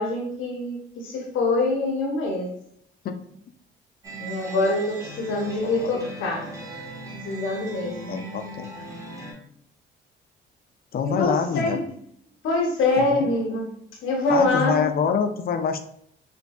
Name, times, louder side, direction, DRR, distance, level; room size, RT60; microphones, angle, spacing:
voice 1, 0.0-2.5 4.2-6.4 7.2-8.2 11.0-11.8 12.4-13.8 14.0-14.8, left 2 dB, 80° left, 0 dB, 0.9 m, -24 dB
sound 1, 4.0-9.3, right 1 dB, 15° right, 1.0 m, -38 dB
voice 2, 5.3-5.9 8.1-8.7 10.9-11.8 13.0-13.3 14.3-15.8, left 6 dB, 50° left, 7 dB, 0.5 m, -26 dB
4.4 x 2.6 x 2.4 m, 0.67 s
cardioid pair, 90°, 20 cm